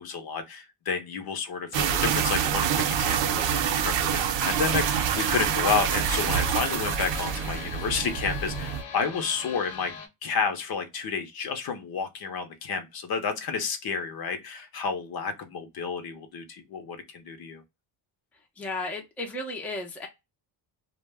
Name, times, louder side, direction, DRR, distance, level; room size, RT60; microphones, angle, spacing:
voice 1, 0.0-9.9 10.2-17.6, left 5 dB, 55° left, 0.7 m, -31 dB
sound 1, 1.7-8.8, right 8 dB, 80° right, 0.5 m, -26 dB
sound 2, 4.5-10.1, left 6 dB, 85° left, 1.0 m, -41 dB
voice 2, 18.6-20.1, left 2 dB, 5° left, 0.5 m, -34 dB
2.3 x 2.2 x 3.2 m
cardioid pair, 145°, 44 cm